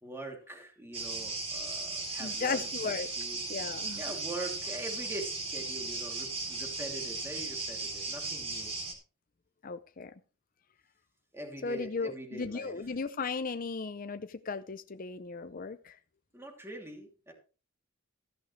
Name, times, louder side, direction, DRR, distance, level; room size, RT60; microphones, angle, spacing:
voice 1, 0.0-3.4 3.9-8.7 11.3-12.7 16.3-17.3, right 1 dB, 10° right, 2 dB, 2.9 m, -43 dB
sound 1, 0.9-8.9, right 3 dB, 30° right, 3.5 m, -37 dB
voice 2, 2.2-3.1 3.5-4.0 9.6-10.1 11.6-16.0, left 4 dB, 45° left, 10 dB, 0.6 m, -36 dB
14.5 x 11.0 x 3.2 m, 0.36 s
head